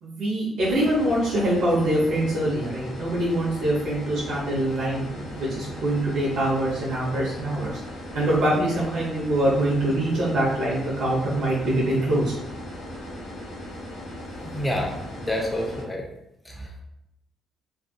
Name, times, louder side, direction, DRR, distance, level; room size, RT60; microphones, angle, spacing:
voice 1, 0.0-5.1 5.3-7.8 8.1-12.3, right 1 dB, 80° right, -7 dB, 0.8 m, -24 dB
sound 1, 0.6-15.8, left 1 dB, 85° left, 0.7 m, -38 dB
voice 2, 14.5-16.0 16.5-16.8, left 1 dB, 15° left, 0 dB, 0.6 m, -29 dB
2.6 x 2.4 x 2.2 m, 0.85 s
cardioid pair, 90°, 0 cm